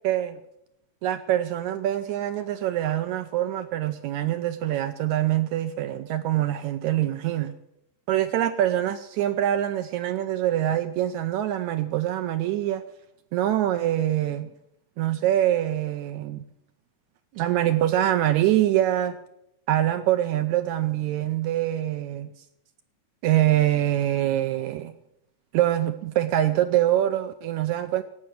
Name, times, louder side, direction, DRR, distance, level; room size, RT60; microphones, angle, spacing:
voice 1, 0.0-0.4 1.0-7.5 8.1-12.8 13.3-14.5 15.0-16.5 17.3-19.2 19.7-22.3 23.2-24.9 25.5-28.0, right 12 dB, 80° right, 1.9 m, -24 dB
17.5 x 6.1 x 9.4 m
omnidirectional pair, 3.8 m